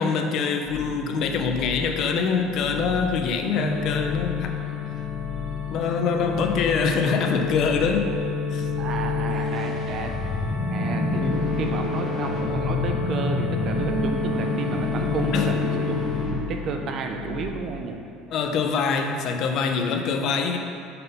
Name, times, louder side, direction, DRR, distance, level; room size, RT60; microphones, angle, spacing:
voice 1, 0.0-4.5 5.7-8.1 8.5-8.7 11.2-11.5 15.3-15.6 18.3-20.6, left 5 dB, 40° left, 4 dB, 0.5 m, -24 dB
sound 1, 0.7-17.5, left 5 dB, 10° right, 0.8 m, -36 dB
sound 2, 3.5-16.3, left 4 dB, 75° right, 1.3 m, -29 dB
voice 2, 8.8-10.1 10.7-11.2 11.6-16.0 16.5-18.0, right 5 dB, 35° right, 4 dB, 0.5 m, -31 dB
sound 3, 9.2-17.4, left 2 dB, 15° left, 1.0 m, -29 dB
5.7 x 3.7 x 5.4 m, 2.6 s
cardioid pair, 170°, 0 cm